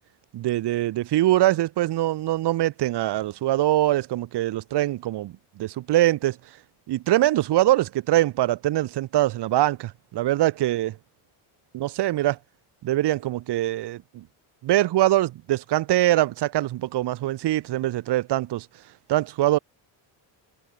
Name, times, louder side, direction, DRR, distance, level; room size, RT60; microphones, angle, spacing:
voice 1, 0.3-6.4 6.9-11.0 11.7-12.4 12.8-14.2 14.6-18.7 19.1-19.6, right 15 dB, 60° right, 1.1 m, -23 dB
cardioid pair, 130°, 47 cm